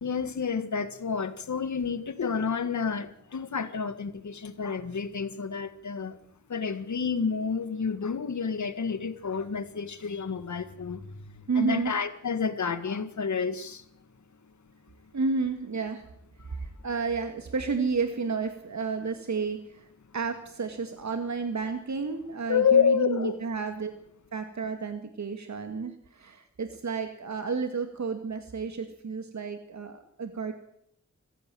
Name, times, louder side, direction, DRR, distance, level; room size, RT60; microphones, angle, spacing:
voice 1, 0.0-6.2 6.5-13.9 16.4-16.6 22.5-23.4, left 6 dB, 75° left, 11 dB, 1.8 m, -29 dB
voice 2, 11.5-11.9 15.1-16.0 16.6-19.9 20.1-23.9 24.3-30.5, right 5 dB, 70° right, 7 dB, 2.1 m, -31 dB
24.5 x 15.0 x 7.8 m, 0.70 s
wide cardioid pair, 95°, 29 cm